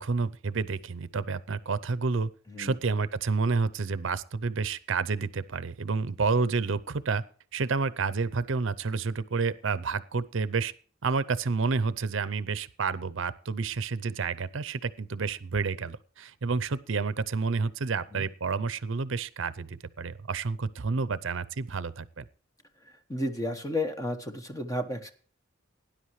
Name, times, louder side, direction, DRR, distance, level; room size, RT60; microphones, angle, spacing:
voice 1, 0.0-2.3 2.6-7.2 7.5-10.7 11.0-22.3, right 4 dB, 65° right, 16 dB, 0.6 m, -29 dB
voice 2, 23.1-25.1, left 1 dB, 15° left, 7 dB, 1.2 m, -32 dB
18.5 x 10.0 x 3.2 m, 0.42 s
head